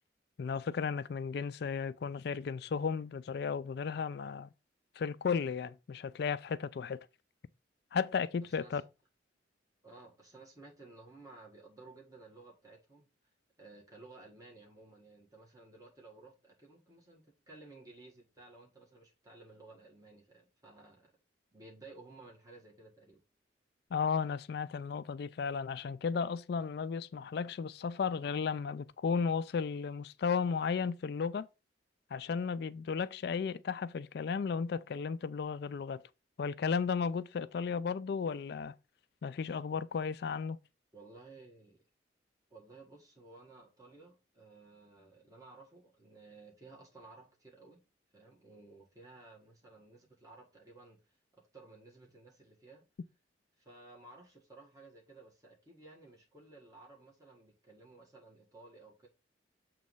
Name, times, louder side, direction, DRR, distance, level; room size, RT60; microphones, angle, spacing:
voice 1, 0.4-4.5 5.0-7.0 7.9-8.8 23.9-31.5 32.1-36.0 36.4-38.7 39.2-40.6, left 6 dB, 55° left, 0.3 m, -34 dB
voice 2, 8.4-8.8 9.8-13.1 13.6-21.1 21.5-23.2 40.9-41.8 42.5-47.8 48.1-52.9 53.6-59.1, right 3 dB, 20° right, 1.6 m, -56 dB
7.3 x 3.1 x 5.4 m
head